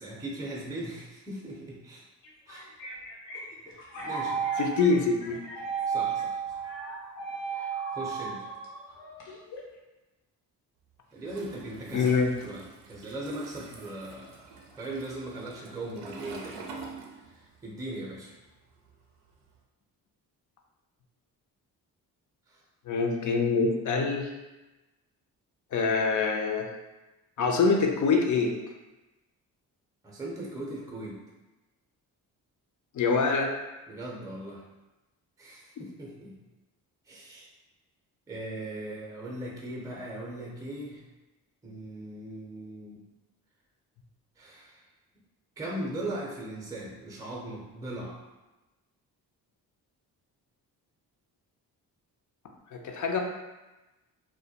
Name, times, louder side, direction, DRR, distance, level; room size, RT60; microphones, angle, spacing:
voice 1, 0.0-2.0 2.5-2.7 3.7-4.4 5.9-6.4 7.4-7.7 7.9-8.5 11.1-12.1 12.4-16.9 17.6-18.3 22.5-22.6 30.0-31.2 33.9-34.6 35.4-36.4 37.1-37.5 38.3-41.0 41.6-43.0 44.4-44.8 45.6-48.2, right 1 dB, 10° right, -2 dB, 0.6 m, -39 dB
sound 1, 2.2-9.8, right 6 dB, 80° left, 0.7 m, -34 dB
voice 2, 4.6-5.4 11.9-12.3 22.9-24.3 25.7-26.7 27.4-28.6 32.9-33.5 52.7-53.2, left 4 dB, 45° left, 2 dB, 0.5 m, -25 dB
Toilet flush, 11.2-17.7 17.9-19.5, right 4 dB, 80° right, 0.5 m, -46 dB
2.2 x 2.1 x 2.7 m, 1.1 s
supercardioid pair, 55°, 42 cm